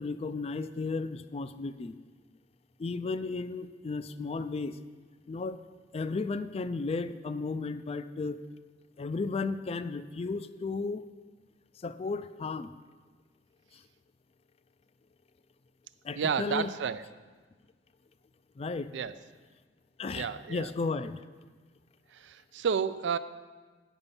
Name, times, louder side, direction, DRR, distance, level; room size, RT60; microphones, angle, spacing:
voice 1, 0.0-1.9 2.8-4.8 5.3-5.6 5.9-8.4 9.0-11.0 11.8-12.7 16.0-16.7 18.6-18.9 20.0-21.2, left 4 dB, 35° left, 13 dB, 0.3 m, -34 dB
voice 2, 16.2-17.1 18.9-19.2 20.1-20.7 22.1-23.2, right 6 dB, 85° right, 14 dB, 0.4 m, -31 dB
9.0 x 5.4 x 6.9 m, 1.4 s
head